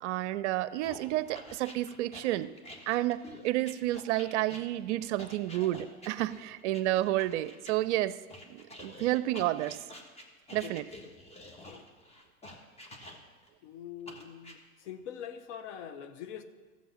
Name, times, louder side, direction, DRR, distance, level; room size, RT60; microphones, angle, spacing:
voice 1, 0.0-2.5 2.9-8.2 8.5-9.8 10.5-10.8, right 15 dB, 55° right, 16 dB, 0.6 m, -30 dB
sound 1, 0.8-7.7 8.3-13.5 14.1-14.6, left 1 dB, 15° left, 1.5 m, -49 dB
voice 2, 10.6-11.1 11.7-11.9 13.6-16.4, left 8 dB, 55° left, 9 dB, 1.1 m, -44 dB
13.5 x 7.4 x 5.7 m, 1.4 s
hypercardioid pair, 100°, 43 cm